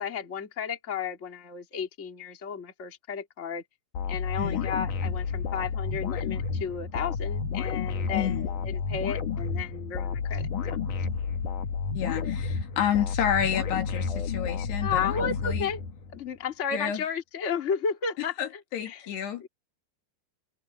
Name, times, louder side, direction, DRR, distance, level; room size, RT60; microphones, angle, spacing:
voice 1, 0.0-3.6 4.1-8.4 8.6-10.8 12.2-12.3 14.8-15.8 16.1-18.3 18.8-19.1 19.4-19.5, left 6 dB, 20° left, 2.1 m, -33 dB
sound 1, 3.9-16.2, left 5 dB, 55° left, 3.4 m, -31 dB
voice 2, 4.4-4.7 8.1-8.5 11.9-15.7 16.7-17.0 18.4-19.5, left 9 dB, 80° left, 4.4 m, -30 dB
omnidirectional pair, 4.8 m